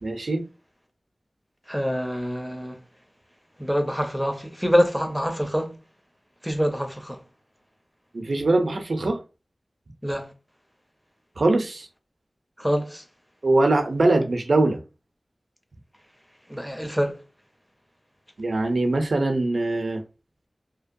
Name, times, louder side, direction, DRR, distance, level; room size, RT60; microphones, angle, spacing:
voice 1, 0.0-0.4 8.1-9.2 11.4-11.9 13.4-14.8 18.4-20.0, right 2 dB, 75° right, 0.5 m, -22 dB
voice 2, 1.7-2.8 3.6-5.8 6.4-7.2 10.0-10.3 12.6-13.0 16.5-17.2, equal, ahead, 0.5 m, -25 dB
2.7 x 2.1 x 2.5 m
wide cardioid pair, 45°, 0 cm